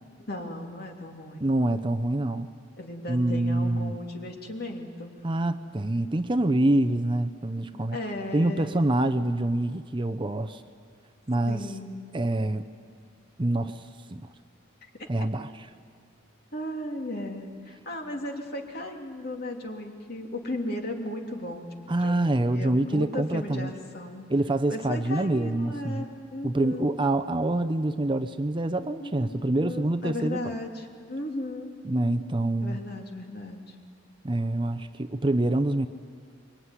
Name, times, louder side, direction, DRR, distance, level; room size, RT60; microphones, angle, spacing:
voice 1, 0.2-1.5 2.8-5.1 7.9-8.8 11.5-12.1 14.9-15.1 16.5-24.3 24.7-26.9 28.8-31.7 32.6-33.7, left 1 dB, 50° left, 2 dB, 3.0 m, -36 dB
voice 2, 1.4-2.5 3.1-3.9 5.2-8.0 8.3-10.6 11.3-11.7 12.1-12.7 13.4-14.2 15.1-15.7 21.9-23.7 24.3-26.0 26.4-30.5 31.8-32.8 34.2-35.9, right 1 dB, 25° right, 10 dB, 0.7 m, -26 dB
25.5 x 23.5 x 9.7 m, 2.1 s
head